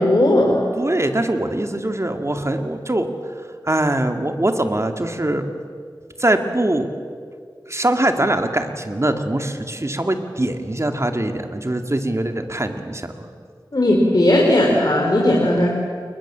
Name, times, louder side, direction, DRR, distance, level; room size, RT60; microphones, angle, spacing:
voice 1, 0.0-0.6 13.7-15.7, left 1 dB, 55° left, -1 dB, 3.7 m, -16 dB
voice 2, 0.8-3.1 3.6-5.5 6.2-6.9 7.7-13.3, right 1 dB, 35° right, 6 dB, 2.3 m, -22 dB
29.5 x 20.5 x 7.5 m, 2.1 s
wide cardioid pair, 50°, 8 cm